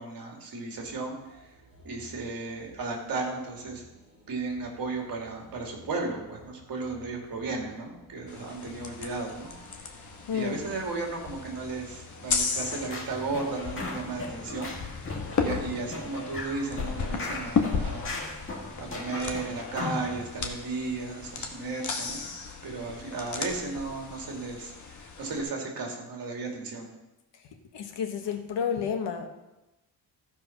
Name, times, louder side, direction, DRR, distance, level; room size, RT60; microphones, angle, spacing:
voice 1, 0.0-1.5 1.8-3.8 4.3-9.5 10.3-14.7 15.4-18.1 18.8-22.2 22.6-26.9, right 3 dB, 55° right, 1 dB, 2.4 m, -34 dB
sound 1, 0.6-18.1, left 1 dB, 15° right, 4.2 m, -55 dB
sound 2, 8.3-25.4, left 5 dB, 45° left, 1.3 m, -35 dB
voice 2, 10.3-10.6 27.7-29.3, left 7 dB, 90° left, 5 dB, 1.4 m, -30 dB
sound 3, 12.5-20.2, left 2 dB, 30° left, 1.9 m, -38 dB
14.5 x 5.2 x 5.8 m, 0.98 s
wide cardioid pair, 175°, 42 cm